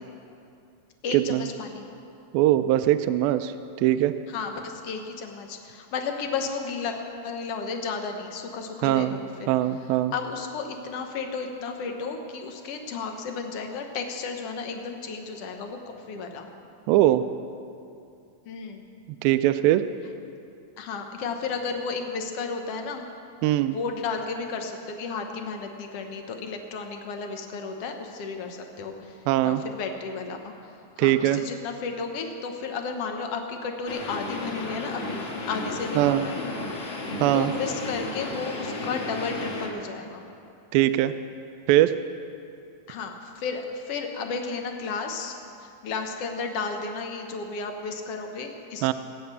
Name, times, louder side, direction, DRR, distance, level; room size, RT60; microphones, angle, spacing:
voice 1, 1.0-1.8 4.3-7.0 7.2-9.5 10.1-16.5 18.4-18.9 20.8-23.0 23.7-36.4 37.3-40.2 42.9-45.3 45.6-48.9, left 4 dB, 70° left, 4 dB, 1.4 m, -33 dB
voice 2, 2.3-4.1 8.8-9.2 9.5-10.1 16.9-17.2 19.2-19.9 23.4-23.8 29.3-29.6 31.0-31.4 36.0-36.2 37.2-37.5 40.7-41.1 41.7-41.9 48.8-48.9, right 14 dB, 85° right, 11 dB, 2.3 m, -21 dB
sound 1, 33.9-39.7, left 3 dB, 45° left, 2.0 m, -33 dB
19.5 x 9.5 x 6.9 m, 2.6 s
omnidirectional pair, 4.3 m